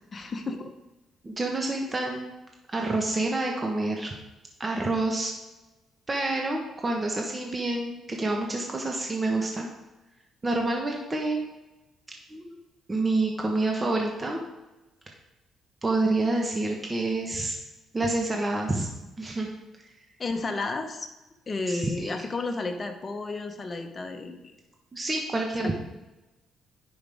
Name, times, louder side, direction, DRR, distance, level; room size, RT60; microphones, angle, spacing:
voice 1, 0.1-0.7 20.2-21.1 21.5-24.5 25.6-25.8, left 3 dB, 35° left, 5 dB, 1.1 m, -32 dB
voice 2, 1.2-2.3 2.7-4.1 4.6-5.3 6.1-9.7 10.4-11.5 12.3-12.6 12.9-14.4 15.8-17.6 17.9-18.9 19.2-19.5 21.7-22.1 24.9-25.8, right 2 dB, 25° right, 0 dB, 1.2 m, -28 dB
9.8 x 5.3 x 3.5 m, 1.0 s
cardioid pair, 90°, 0 cm